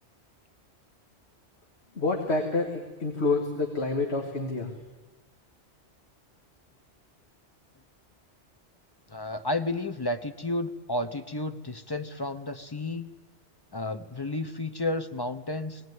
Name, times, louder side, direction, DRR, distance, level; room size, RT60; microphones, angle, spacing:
voice 1, 2.0-4.7, left 3 dB, 65° left, 2 dB, 2.0 m, -28 dB
voice 2, 9.1-13.1 13.7-15.9, left 2 dB, 25° left, 10 dB, 0.7 m, -32 dB
19.0 x 18.0 x 9.5 m, 1.2 s
omnidirectional pair, 1.2 m